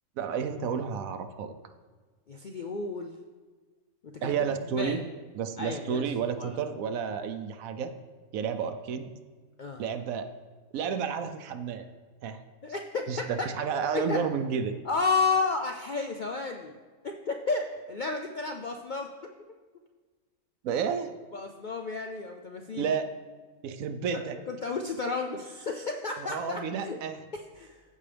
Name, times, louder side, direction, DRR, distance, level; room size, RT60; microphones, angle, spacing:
voice 1, 0.2-1.5 4.2-5.0 5.3-7.9 8.3-9.1 9.8-10.2 10.7-11.9 12.2-12.4 13.1-14.7 20.6-21.1 22.8-23.1 23.6-24.4 26.2-27.2, right 6 dB, 75° right, 9 dB, 1.0 m, -31 dB
voice 2, 2.3-3.2 4.1-4.3 4.6-5.0 5.6-6.0 6.4-6.6 9.6-9.8 12.6-13.5 13.9-14.2 14.8-16.8 17.0-19.1 21.3-22.9 24.1-27.0 27.3-27.8, left 4 dB, 70° left, 3 dB, 0.4 m, -32 dB
14.5 x 5.4 x 3.4 m, 1.4 s
omnidirectional pair, 1.5 m